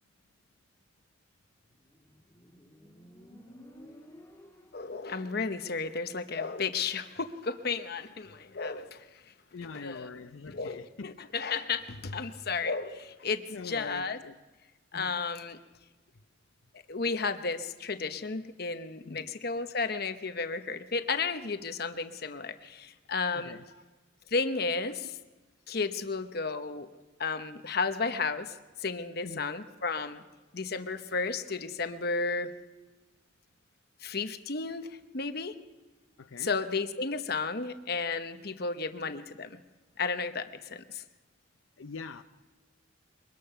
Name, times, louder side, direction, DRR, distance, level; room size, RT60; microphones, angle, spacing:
Motorcycle, 1.6-5.1, equal, 15° left, 2.0 m, -54 dB
voice 1, 4.7-9.0 9.8-10.1 10.5-14.2 14.9-15.6 16.9-23.5 24.3-25.2 25.7-26.9 27.2-30.2 30.5-32.5 34.0-34.9 35.1-35.5 36.4-39.5 40.0-41.0, left 4 dB, 50° left, 9 dB, 1.0 m, -33 dB
voice 2, 9.5-11.1 13.2-14.4 14.9-15.1 19.1-19.3 23.3-23.8 29.2-29.5 36.2-36.5 41.8-42.2, left 4 dB, 80° left, 8 dB, 0.6 m, -44 dB
23.0 x 20.0 x 5.7 m, 1.2 s
head